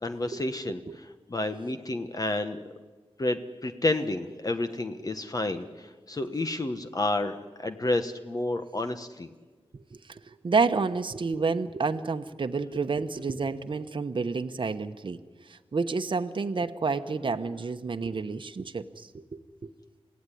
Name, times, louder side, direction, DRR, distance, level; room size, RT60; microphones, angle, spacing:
voice 1, 0.0-2.6 3.2-9.3, left 2 dB, 35° left, 8 dB, 1.2 m, -30 dB
voice 2, 9.7-15.2 15.5-19.7, right 4 dB, 50° right, 7 dB, 1.0 m, -30 dB
28.5 x 16.5 x 10.0 m, 1.4 s
wide cardioid pair, 120°, 10 cm